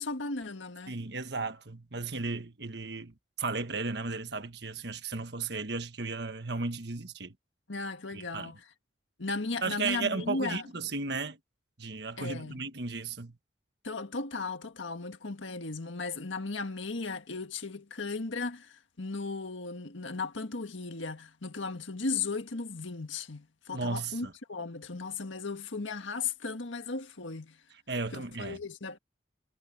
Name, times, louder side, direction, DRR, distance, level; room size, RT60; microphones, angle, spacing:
voice 1, 0.0-1.0 7.7-8.6 9.2-10.7 12.2-12.6 13.8-27.6 28.1-29.0, left 3 dB, 90° left, 1.7 m, -36 dB
voice 2, 0.9-7.3 8.1-8.5 9.6-11.4 11.8-13.4 23.7-24.3 27.9-28.6, right 3 dB, 60° right, 1.5 m, -35 dB
head